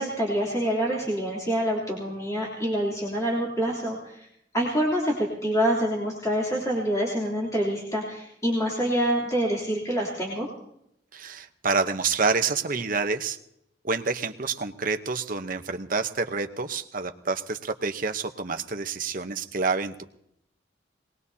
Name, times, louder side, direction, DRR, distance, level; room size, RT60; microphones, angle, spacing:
voice 1, 0.0-4.3 4.5-10.5, equal, 20° left, -4 dB, 3.1 m, -26 dB
voice 2, 11.1-13.4 13.8-20.0, right 4 dB, 50° right, 8 dB, 0.9 m, -28 dB
23.0 x 19.5 x 2.8 m, 0.75 s
head